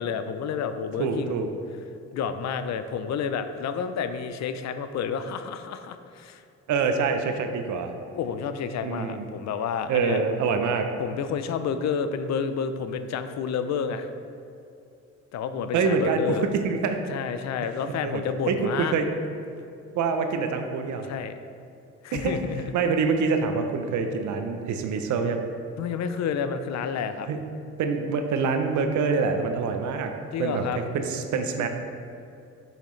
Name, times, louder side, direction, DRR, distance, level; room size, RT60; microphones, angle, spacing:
voice 1, 0.0-1.5 2.1-6.4 8.1-10.2 11.0-14.1 15.3-16.5 17.1-18.9 21.0-21.4 22.0-22.7 25.8-27.3 30.3-30.8, left 6 dB, 65° left, 10 dB, 0.5 m, -30 dB
voice 2, 1.0-1.5 6.7-7.9 8.8-9.3 9.9-10.9 15.7-17.0 18.0-19.1 19.9-21.1 22.1-22.4 22.7-25.4 27.3-27.4 27.8-30.1 30.4-31.7, right 5 dB, 75° right, 6 dB, 0.7 m, -25 dB
6.9 x 5.8 x 3.2 m, 2.6 s
cardioid pair, 90°, 30 cm